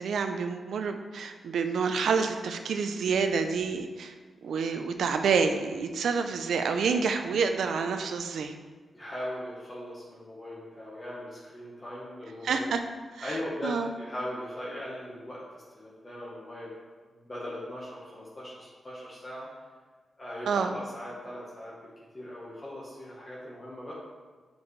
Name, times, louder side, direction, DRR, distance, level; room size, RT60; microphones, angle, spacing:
voice 1, 0.0-4.1 4.4-8.5 12.4-12.8 13.2-13.4 13.6-13.9 20.5-20.7, right 5 dB, 90° right, 7 dB, 0.5 m, -28 dB
voice 2, 8.9-12.7 13.2-16.8 17.2-19.6 20.2-21.7 22.1-23.9, left 1 dB, 25° left, -7 dB, 1.3 m, -39 dB
7.2 x 5.3 x 3.2 m, 1.4 s
wide cardioid pair, 130°, 0 cm